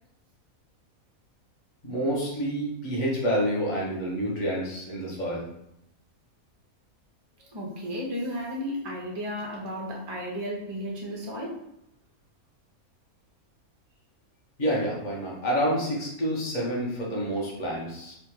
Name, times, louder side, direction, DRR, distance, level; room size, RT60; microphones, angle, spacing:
voice 1, 1.8-5.4 14.6-18.1, equal, 35° left, -5 dB, 1.2 m, -28 dB
voice 2, 7.4-11.5, equal, 40° right, -2 dB, 0.3 m, -34 dB
3.4 x 2.5 x 4.5 m, 0.80 s
omnidirectional pair, 1.5 m